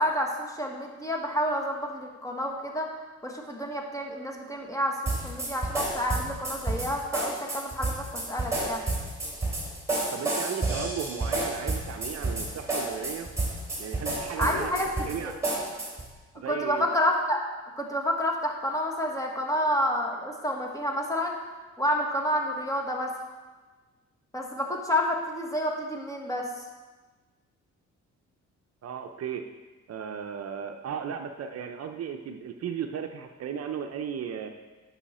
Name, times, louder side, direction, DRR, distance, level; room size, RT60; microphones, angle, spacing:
voice 1, 0.0-2.9 3.2-8.8 14.4-15.3 16.5-17.5 17.8-21.4 21.8-23.1 24.3-26.5, equal, 10° left, 0 dB, 1.5 m, -29 dB
sound 1, 5.0-16.1, right 2 dB, 10° right, 3.0 m, -30 dB
voice 2, 10.1-13.3 13.8-14.7 15.1-15.3 16.4-16.9 28.8-29.4 29.9-34.5, right 7 dB, 55° right, 5 dB, 0.6 m, -35 dB
10.0 x 5.6 x 4.2 m, 1.3 s
cardioid pair, 90°, 30 cm